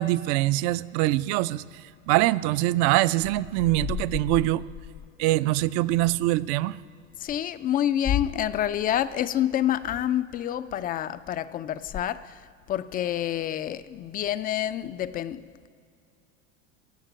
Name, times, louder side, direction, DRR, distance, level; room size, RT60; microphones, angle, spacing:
voice 1, 0.0-1.6 2.1-4.6 5.2-6.8, right 17 dB, 50° right, 18 dB, 0.5 m, -23 dB
voice 2, 7.2-15.7, left 11 dB, 25° left, 14 dB, 0.3 m, -28 dB
16.5 x 6.6 x 8.9 m, 2.3 s
hypercardioid pair, 105°, 40 cm